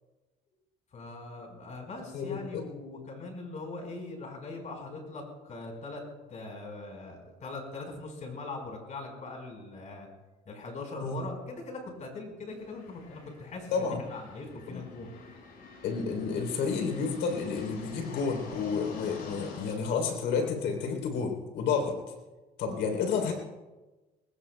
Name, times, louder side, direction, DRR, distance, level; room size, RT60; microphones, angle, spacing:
voice 1, 0.9-6.0 6.3-10.1 10.4-15.1, left 3 dB, 45° left, 2 dB, 4.7 m, -41 dB
voice 2, 2.1-2.6 11.0-11.2 13.7-14.0 14.7-14.8 15.8-22.0 22.6-23.3, left 5 dB, 85° left, 4 dB, 3.5 m, -30 dB
sound 1, 12.5-19.7, left 3 dB, 65° left, 5.5 m, -47 dB
22.0 x 19.5 x 2.3 m, 1.2 s
cardioid pair, 110°, 17 cm